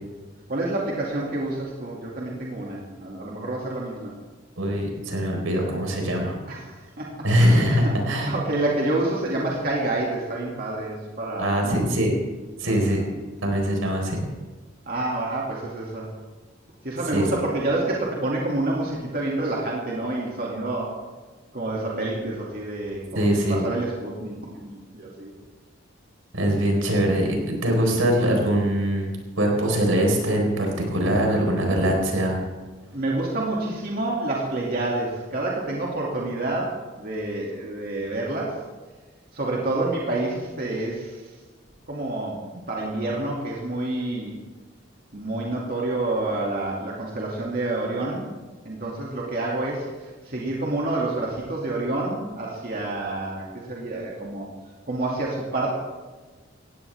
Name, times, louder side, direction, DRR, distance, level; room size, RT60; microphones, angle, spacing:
voice 1, 0.5-4.1 6.5-7.8 8.2-11.8 12.6-13.0 14.9-16.1 16.8-21.0 21.5-25.3 32.9-38.5 39.3-41.3 41.9-42.4 42.7-44.3 45.1-48.3 48.6-54.5 54.9-55.7, right 2 dB, 45° right, -3 dB, 2.5 m, -28 dB
voice 2, 4.6-6.4 7.2-8.3 11.4-12.2 12.6-13.0 13.4-14.2 17.1-17.3 23.1-23.7 26.3-32.4, equal, 85° right, 1 dB, 4.5 m, -22 dB
18.5 x 16.0 x 3.6 m, 1.3 s
head